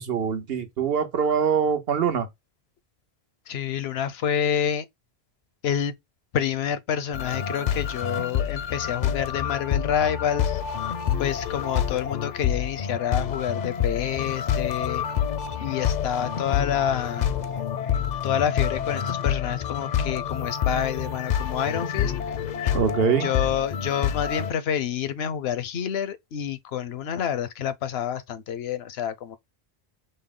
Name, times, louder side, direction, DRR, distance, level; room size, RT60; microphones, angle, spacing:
voice 1, 0.0-2.3 22.7-23.3, right 7 dB, 75° right, 1.1 m, -24 dB
voice 2, 3.5-4.8 5.6-5.9 6.3-10.6 11.2-15.0 15.6-17.3 18.2-22.1 22.6-22.7 23.2-29.4, left 9 dB, 80° left, 0.9 m, -28 dB
sound 1, 7.1-24.5, left 8 dB, 55° left, 0.6 m, -27 dB
5.4 x 2.1 x 3.6 m
omnidirectional pair, 1.0 m